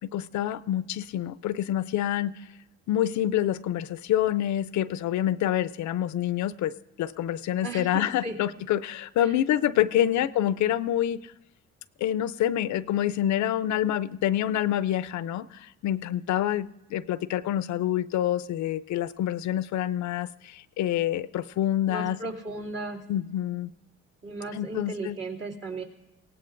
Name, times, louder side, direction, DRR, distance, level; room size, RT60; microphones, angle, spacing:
voice 1, 0.0-2.3 2.9-11.2 12.0-22.2 23.1-23.7 24.5-25.2, left 12 dB, 70° left, 17 dB, 0.5 m, -27 dB
voice 2, 7.6-8.4 9.2-9.4 9.7-10.2 21.9-23.0 24.2-25.8, right 2 dB, 55° right, -2 dB, 2.6 m, -36 dB
23.5 x 17.5 x 2.5 m, 0.92 s
cardioid pair, 90°, 30 cm